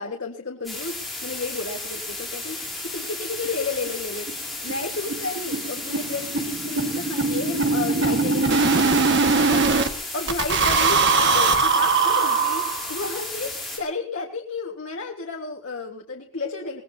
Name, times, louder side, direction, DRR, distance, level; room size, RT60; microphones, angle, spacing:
voice 1, 0.0-2.6 2.8-4.3 4.6-9.7 10.1-16.8, left 3 dB, 90° left, 0 dB, 1.7 m, -32 dB
sound 1, 0.6-13.8, left 2 dB, ahead, 7.1 m, -34 dB
sound 2, 3.0-3.1 3.4-3.5 3.9-4.0 4.3-4.4 4.7-9.9 10.3-13.1, right 4 dB, 60° right, 1.6 m, -21 dB
22.5 x 18.5 x 2.8 m, 0.43 s
head